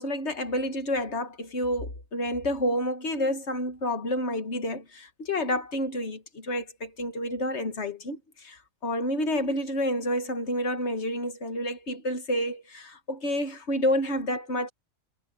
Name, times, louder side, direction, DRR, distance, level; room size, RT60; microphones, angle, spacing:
voice 1, 0.0-14.7, equal, 55° left, 2.0 m, -29 dB
omnidirectional pair, 1.4 m